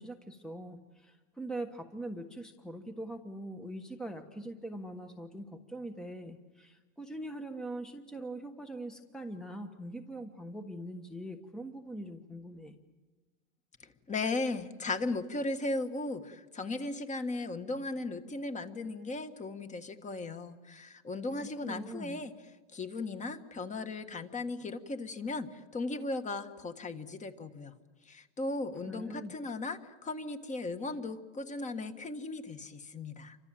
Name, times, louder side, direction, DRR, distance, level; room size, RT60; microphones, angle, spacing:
voice 1, 0.0-12.8 21.4-22.2 28.9-29.3, right 1 dB, ahead, 6 dB, 1.2 m, -42 dB
voice 2, 13.8-22.3 22.7-27.7 28.0-33.4, left 2 dB, 20° left, 8 dB, 1.7 m, -37 dB
29.0 x 25.5 x 7.7 m, 1.3 s
supercardioid pair, 135°, 37 cm